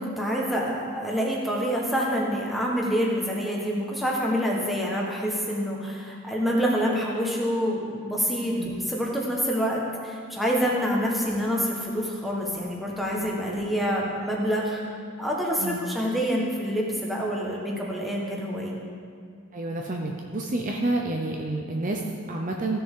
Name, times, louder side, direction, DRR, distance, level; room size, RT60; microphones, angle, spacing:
voice 1, 0.0-14.8 15.2-18.7, equal, ahead, -3 dB, 1.2 m, -27 dB
voice 2, 19.5-22.8, right 2 dB, 35° right, 1 dB, 0.6 m, -29 dB
15.0 x 6.8 x 3.7 m, 2.2 s
head